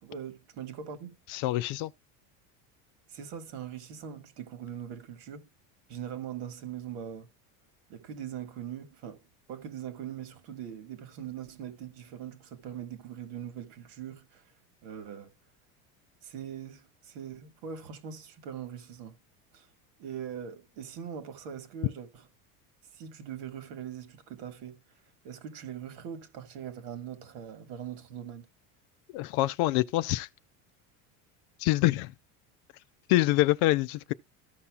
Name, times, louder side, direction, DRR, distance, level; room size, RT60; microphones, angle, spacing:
voice 1, 0.0-1.2 3.1-5.5 5.9-7.3 7.9-9.2 9.5-14.4 14.8-15.3 16.2-19.2 19.5-19.7 20.0-22.2 22.9-24.8 25.2-28.5, right 8 dB, 75° right, 1.8 m, -41 dB
voice 2, 1.3-1.9 29.1-30.3 31.6-32.1 33.1-34.1, left 17 dB, 60° left, 0.5 m, -25 dB
14.5 x 5.6 x 2.3 m
cardioid pair, 155°, 40 cm